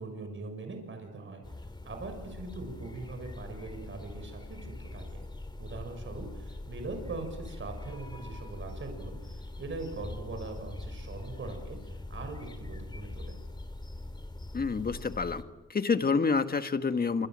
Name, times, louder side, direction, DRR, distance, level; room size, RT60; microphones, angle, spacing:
voice 1, 0.0-5.2 5.6-13.4, right 3 dB, 40° right, 5 dB, 6.3 m, -41 dB
sound 1, 1.4-15.4, left 2 dB, 15° left, 2.6 m, -42 dB
voice 2, 14.5-15.4 15.7-17.3, left 5 dB, 30° left, 9 dB, 1.7 m, -28 dB
27.5 x 25.5 x 7.6 m, 1.2 s
cardioid pair, 90°, 30 cm